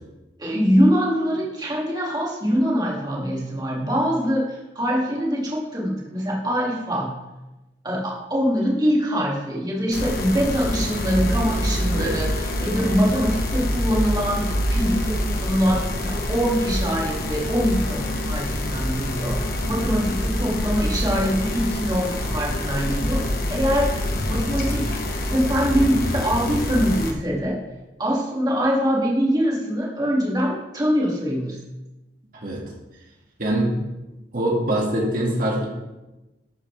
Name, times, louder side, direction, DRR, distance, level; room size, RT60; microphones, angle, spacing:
voice 1, 0.4-7.2 7.8-23.2 23.5-24.9 25.3-27.6 28.0-31.6, equal, 20° right, -4 dB, 2.4 m, -23 dB
sound 1, 9.9-27.1, left 1 dB, 55° left, 1.4 m, -26 dB
voice 2, 33.4-33.8 34.3-35.7, right 1 dB, 50° right, -3 dB, 2.1 m, -23 dB
11.5 x 9.7 x 3.4 m, 1.0 s
head